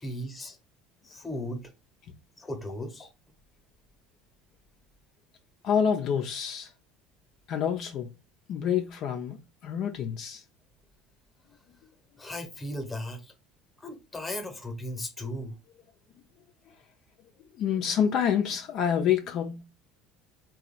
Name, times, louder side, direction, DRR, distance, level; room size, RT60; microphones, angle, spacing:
voice 1, 0.0-0.6 1.0-1.7 2.4-3.1 12.2-13.3 13.8-15.6, left 1 dB, 15° left, 0.9 m, -36 dB
voice 2, 5.6-6.7 7.5-8.1 8.5-10.4 17.6-19.6, left 8 dB, 55° left, 0.5 m, -27 dB
3.0 x 2.3 x 4.0 m
supercardioid pair, 105°, 0 cm